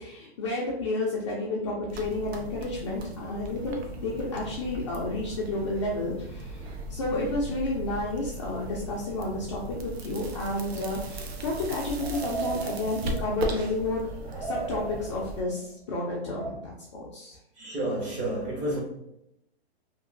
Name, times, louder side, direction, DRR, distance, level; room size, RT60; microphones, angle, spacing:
voice 1, 0.0-14.0 14.4-17.4, left 2 dB, 30° left, 0.4 m, -31 dB
sound 1, 1.9-15.4, right 2 dB, 70° right, 0.7 m, -38 dB
sound 2, 10.3-13.9 14.2-15.5 16.2-16.5, right 4 dB, 45° right, 1.1 m, -38 dB
voice 2, 17.6-18.8, right 1 dB, 20° right, 0.9 m, -31 dB
2.9 x 2.5 x 2.5 m
hypercardioid pair, 150°, 33 cm